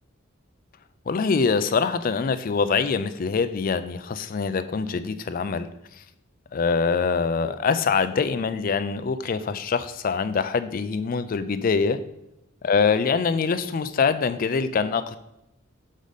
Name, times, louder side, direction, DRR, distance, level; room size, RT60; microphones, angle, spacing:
voice 1, 1.1-5.7 6.0-6.1 6.5-12.0 12.6-15.2, left 5 dB, 40° left, 11 dB, 0.4 m, -24 dB
6.3 x 5.0 x 4.0 m, 0.85 s
head